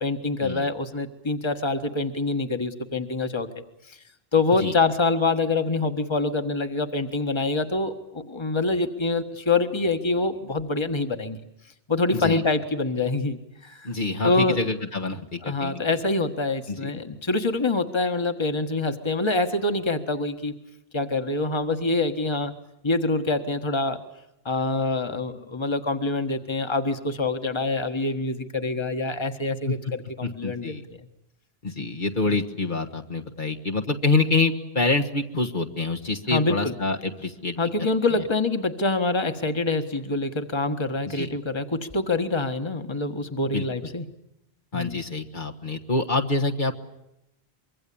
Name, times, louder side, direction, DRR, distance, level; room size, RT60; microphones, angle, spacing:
voice 1, 0.0-3.5 3.9-4.0 4.3-11.4 11.9-13.9 14.2-14.6 15.4-20.5 20.9-22.5 22.8-24.0 24.5-30.7 36.3-36.7 37.6-44.1 44.7-45.0, left 3 dB, 25° left, 7 dB, 1.6 m, -25 dB
voice 2, 13.8-16.0 16.7-16.9 29.7-29.8 30.2-30.8 31.6-37.6 38.1-38.2 41.1-41.3 43.5-43.6 44.7-46.7, left 3 dB, 50° left, 1 dB, 1.7 m, -26 dB
25.0 x 23.5 x 8.6 m, 0.84 s
omnidirectional pair, 1.0 m